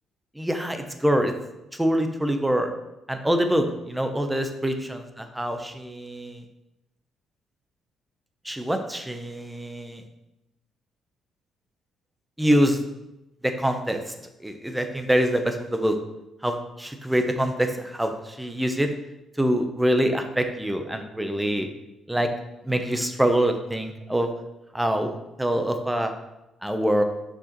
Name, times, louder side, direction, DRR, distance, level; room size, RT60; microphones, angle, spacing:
voice 1, 0.4-1.3 1.8-2.7 3.1-6.4 8.4-10.0 12.4-12.8 13.4-14.0 14.4-16.0 16.4-18.9 19.4-21.7 22.1-22.3 22.6-24.3 24.7-25.1 25.4-26.1 26.6-27.0, equal, 5° right, 6 dB, 0.7 m, -25 dB
6.4 x 5.0 x 3.0 m, 0.93 s
cardioid pair, 90°, 0 cm